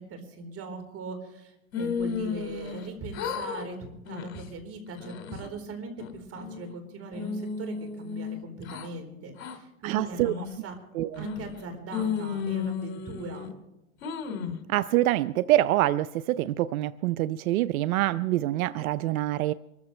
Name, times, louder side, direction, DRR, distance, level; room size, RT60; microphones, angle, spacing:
voice 1, 0.0-10.8 11.2-13.5, right 3 dB, 35° right, 5 dB, 4.1 m, -40 dB
sound 1, 1.7-2.9 3.1-3.7 4.1-4.4 4.9-5.5 6.0-6.7 7.1-8.9 9.4-9.6 10.1-10.6 11.1-11.6 11.9-13.5 14.0-14.6, left 6 dB, 80° left, 2.3 m, -33 dB
voice 2, 9.8-10.3 10.9-11.3 14.7-19.5, right 15 dB, 80° right, 17 dB, 0.6 m, -25 dB
24.5 x 14.5 x 3.2 m, 0.92 s
hypercardioid pair, 115°, 42 cm